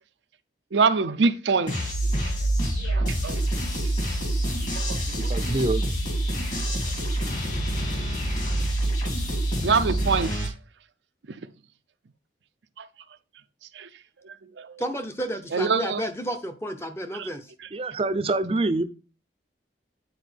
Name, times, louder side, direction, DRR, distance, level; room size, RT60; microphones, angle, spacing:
voice 1, 0.7-1.9 2.8-3.4 4.9-5.0 9.6-10.5 12.8-12.9 13.8-13.9 14.6-14.7 15.5-16.0 17.2-17.3, right 4 dB, 80° right, 0.5 m, -24 dB
sound 1, 1.7-10.5, right 1 dB, 45° left, 2.6 m, -26 dB
voice 2, 5.3-5.8 17.7-18.8, right 2 dB, 30° right, 0.5 m, -25 dB
voice 3, 14.8-17.5, equal, 15° left, 0.7 m, -31 dB
9.3 x 4.3 x 3.3 m
head